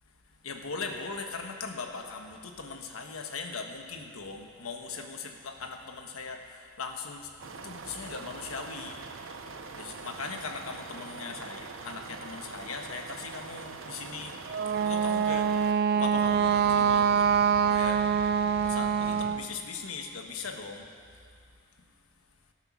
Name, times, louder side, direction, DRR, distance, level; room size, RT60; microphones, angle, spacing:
voice 1, 0.4-9.0 9.8-14.4 14.8-15.5 16.0-17.3 17.7-18.0 18.6-20.9, left 4 dB, 80° left, 4 dB, 1.2 m, -39 dB
sound 1, 7.4-15.7, right 4 dB, 65° right, 0.8 m, -43 dB
Wind instrument woodwind instrument, 14.5-19.5, right 7 dB, 50° right, 0.3 m, -25 dB
Fire, 15.9-19.6, right 1 dB, 30° right, 1.2 m, -44 dB
13.5 x 8.9 x 6.1 m, 2.3 s
head